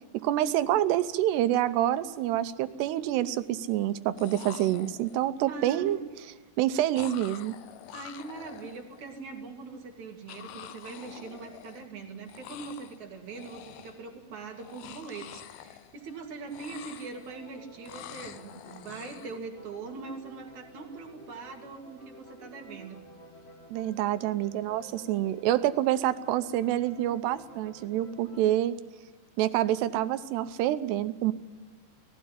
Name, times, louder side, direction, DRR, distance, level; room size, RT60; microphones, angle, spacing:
voice 1, 0.1-6.0 6.6-7.5 23.7-28.8 29.4-31.3, right 13 dB, 90° right, 12 dB, 2.9 m, -27 dB
sound 1, 1.7-1.9 2.3-2.9 3.9-4.0 4.2-5.4 7.0-9.2 10.3-12.0 12.3-13.0 13.3-14.1 14.5-16.2 16.5-17.5 17.9-19.4, left 12 dB, 75° left, 2.5 m, -47 dB
voice 2, 5.5-6.0 7.9-23.0, right 4 dB, 50° right, 2 dB, 3.2 m, -42 dB
sound 2, 17.0-28.4, right 1 dB, 40° left, 3.4 m, -52 dB
20.0 x 15.0 x 9.9 m, 1.4 s
omnidirectional pair, 4.7 m